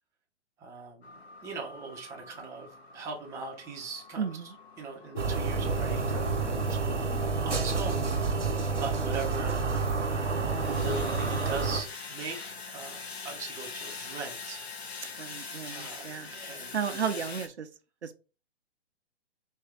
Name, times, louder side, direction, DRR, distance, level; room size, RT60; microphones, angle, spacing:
voice 1, 0.6-6.8 7.2-8.2 8.8-9.7 10.6-14.6 15.6-17.3, right 4 dB, 10° right, -1 dB, 0.6 m, -40 dB
sound 1, 1.0-17.5, left 4 dB, 65° left, 1.2 m, -45 dB
voice 2, 4.2-4.5 15.2-16.3 16.7-17.7 18.0-18.2, right 7 dB, 70° right, 9 dB, 0.7 m, -33 dB
sound 2, 5.0-7.2 7.5-8.9 9.3-10.2 10.9-11.0, left 6 dB, 30° left, 0.8 m, -46 dB
sound 3, 5.2-11.8, right 4 dB, 85° right, 1.1 m, -29 dB
4.5 x 3.1 x 3.5 m, 0.32 s
figure-of-eight pair, 125°, 35 cm